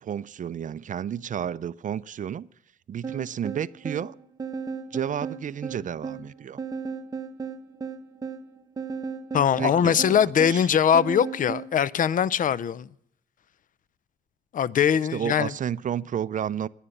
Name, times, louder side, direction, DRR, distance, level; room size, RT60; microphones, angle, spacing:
voice 1, 0.0-2.5 2.9-4.1 4.9-6.6 9.6-10.2 10.4-10.7 15.1-16.7, right 9 dB, 40° right, 0.4 m, -31 dB
sound 1, 3.0-11.7, right 5 dB, 20° right, 0.9 m, -35 dB
voice 2, 9.3-12.9 14.5-15.5, left 8 dB, 40° left, 0.5 m, -22 dB
11.0 x 10.0 x 6.5 m
cardioid pair, 90°, 20 cm